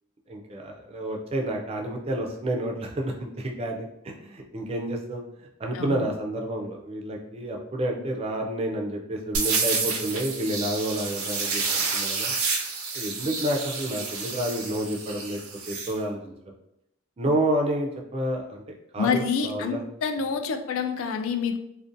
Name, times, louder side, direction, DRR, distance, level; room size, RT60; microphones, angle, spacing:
voice 1, 0.3-5.2 5.6-12.3 12.9-15.4 15.7-16.3 17.2-18.6 18.9-19.8, right 1 dB, 30° right, 1 dB, 0.4 m, -29 dB
voice 2, 5.7-6.1 19.0-21.6, left 6 dB, 70° left, 7 dB, 0.3 m, -27 dB
sound 1, 9.3-15.9, right 4 dB, 85° right, 0.5 m, -29 dB
2.5 x 2.1 x 2.5 m, 0.82 s
head